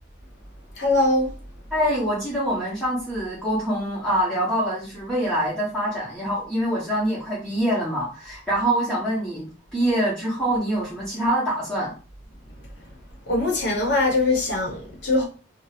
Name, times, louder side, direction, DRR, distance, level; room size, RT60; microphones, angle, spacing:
voice 1, 0.7-1.4 13.3-15.2, left 2 dB, 65° left, 1.1 m, -22 dB
voice 2, 1.7-11.9, right 1 dB, 5° left, 1.1 m, -25 dB
2.7 x 2.3 x 3.2 m
head